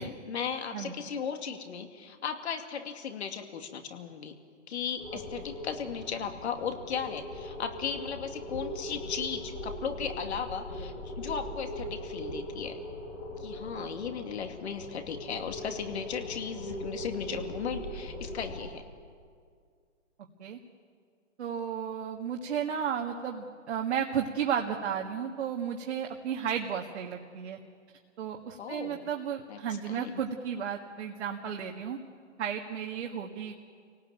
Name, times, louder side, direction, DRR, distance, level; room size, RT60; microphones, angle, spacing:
voice 1, 0.0-4.4 4.7-12.8 13.4-18.8 28.6-29.1 29.5-29.6 29.9-30.1, left 7 dB, 60° left, 6 dB, 2.5 m, -36 dB
sound 1, 5.0-18.6, equal, 80° left, 6.2 m, -40 dB
voice 2, 21.4-27.6 28.2-32.0 32.4-33.7, right 8 dB, 60° right, 1 dB, 1.9 m, -33 dB
27.0 x 18.0 x 9.0 m, 2.1 s
hypercardioid pair, 150°, 38 cm